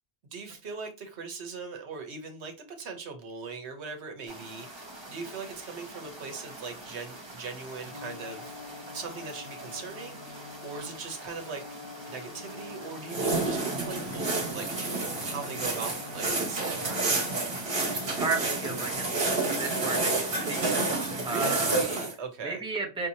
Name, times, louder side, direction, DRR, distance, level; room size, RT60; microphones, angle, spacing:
voice 1, 0.3-8.5 8.9-11.6 12.1-17.4 21.1-22.6, right 4 dB, 85° right, 1.2 m, -40 dB
sound 1, 4.3-21.8, right 1 dB, 25° right, 1.0 m, -46 dB
Bowed string instrument, 7.8-19.0, left 5 dB, 65° left, 2.8 m, -46 dB
sound 2, 13.1-22.1, right 3 dB, 65° right, 1.5 m, -29 dB
voice 2, 18.1-20.7 21.2-22.0 22.4-23.1, right 4 dB, 5° right, 0.7 m, -34 dB
5.2 x 2.9 x 2.7 m
omnidirectional pair, 1.1 m